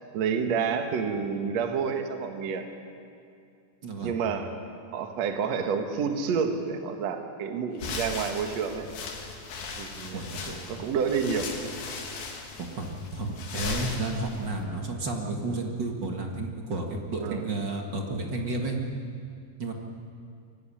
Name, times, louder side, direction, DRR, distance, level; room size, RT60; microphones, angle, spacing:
voice 1, 0.1-2.7 4.0-4.5 4.9-8.9 9.8-10.2 10.7-11.5 17.2-17.4, right 6 dB, 55° right, 5 dB, 2.3 m, -29 dB
voice 2, 3.8-4.1 10.1-10.6 12.6-18.8 19.6-19.7, right 2 dB, 40° right, 1 dB, 1.8 m, -32 dB
sound 1, 7.8-14.6, left 4 dB, 80° left, 4.0 m, -38 dB
22.5 x 16.5 x 10.0 m, 2.4 s
omnidirectional pair, 4.2 m